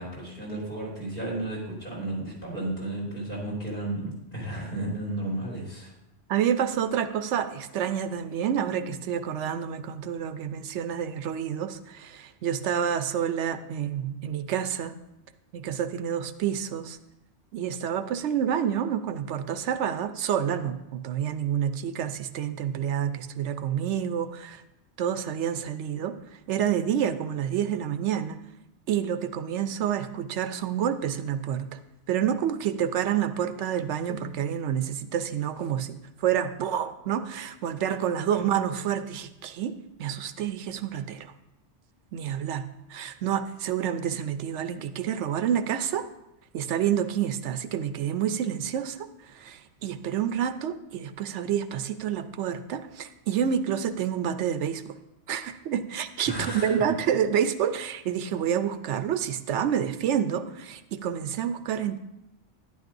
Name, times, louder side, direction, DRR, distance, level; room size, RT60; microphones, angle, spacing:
voice 1, 0.0-5.9 38.3-38.4 56.3-56.8, right 1 dB, 55° left, -4 dB, 4.5 m, -33 dB
voice 2, 6.3-14.9 15.5-17.0 17.5-24.6 25.0-26.2 26.5-28.4 28.9-31.7 32.1-36.0 36.2-41.3 42.1-46.0 46.5-49.1 49.3-54.8 55.3-62.0, right 9 dB, 85° right, 11 dB, 0.9 m, -28 dB
12.0 x 11.0 x 2.6 m, 0.89 s
omnidirectional pair, 1.2 m